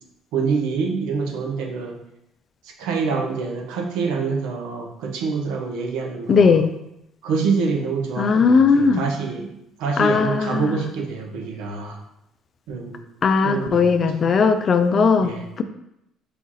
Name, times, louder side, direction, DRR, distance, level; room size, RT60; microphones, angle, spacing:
voice 1, 0.3-2.0 2.7-6.6 7.2-12.0 12.7-13.0 13.4-14.3 15.2-15.5, right 5 dB, 80° right, 3 dB, 0.7 m, -26 dB
voice 2, 6.3-6.7 8.2-9.0 10.0-10.6 13.2-15.6, left 5 dB, 40° left, 8 dB, 0.4 m, -18 dB
5.0 x 2.4 x 4.0 m, 0.82 s
cardioid pair, 100°, 0 cm